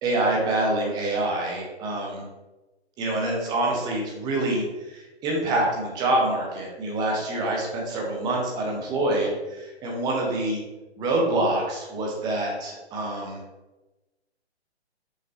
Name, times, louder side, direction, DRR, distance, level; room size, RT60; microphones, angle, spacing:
voice 1, 0.0-2.2 3.0-10.6 11.0-13.4, right 2 dB, 10° right, -1 dB, 0.9 m, -26 dB
6.0 x 5.3 x 3.0 m, 1.1 s
figure-of-eight pair, 135°, 33 cm